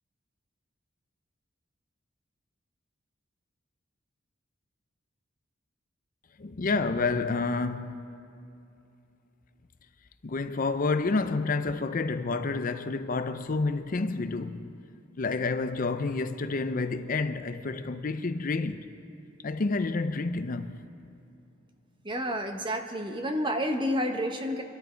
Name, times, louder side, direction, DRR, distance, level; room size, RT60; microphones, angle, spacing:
voice 1, 6.4-8.1 10.2-14.7 15.2-18.8 19.4-20.8, left 3 dB, 45° left, 0.5 m, -29 dB
voice 2, 22.0-24.6, equal, 25° right, 1.1 m, -30 dB
26.0 x 12.0 x 4.5 m
head